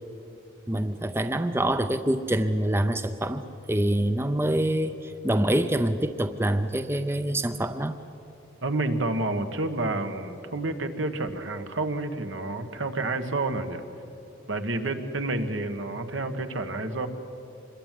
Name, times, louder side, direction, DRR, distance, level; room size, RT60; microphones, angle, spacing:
voice 1, 0.7-8.0, right 1 dB, 10° right, 10 dB, 0.6 m, -26 dB
voice 2, 8.6-13.8 14.5-17.1, right 2 dB, 80° right, 7 dB, 1.8 m, -29 dB
25.5 x 22.0 x 9.4 m, 2.8 s
head